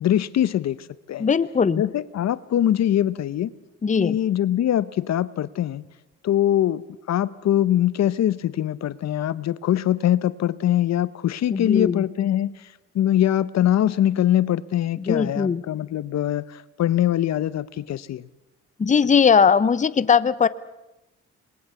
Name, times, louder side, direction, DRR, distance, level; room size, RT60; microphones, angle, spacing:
voice 1, 0.0-1.3 1.8-3.5 4.0-5.8 6.2-6.8 7.1-18.2, left 11 dB, 60° left, 17 dB, 0.8 m, -23 dB
voice 2, 1.2-1.8 3.8-4.2 11.5-12.0 15.1-15.6 18.8-20.5, left 6 dB, 25° left, 16 dB, 0.8 m, -19 dB
27.0 x 20.5 x 6.9 m, 0.97 s
cardioid pair, 90°, 30 cm